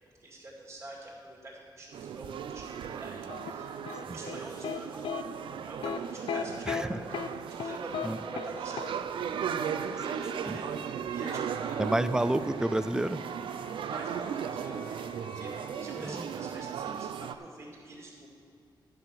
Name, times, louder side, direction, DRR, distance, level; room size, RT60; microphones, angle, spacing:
voice 1, 0.2-5.2 5.6-12.0 13.8-15.0 15.3-18.3, right 2 dB, 35° right, -3 dB, 2.4 m, -46 dB
sound 1, 1.9-17.3, right 8 dB, 85° right, 0.5 m, -36 dB
sound 2, 3.3-4.8 5.0-5.2 5.8-6.0 6.3-6.8 7.1-7.3 7.6-8.1 8.4-8.5 8.8-8.9, left 7 dB, 85° left, 0.5 m, -34 dB
voice 2, 6.7-7.0 8.0-8.2 10.5-10.6 11.8-13.2, right 1 dB, 10° right, 13 dB, 0.3 m, -29 dB
Wind instrument woodwind instrument, 11.2-16.1, left 4 dB, 40° left, 1.0 m, -52 dB
11.5 x 5.9 x 7.4 m, 2.5 s
wide cardioid pair, 145°, 8 cm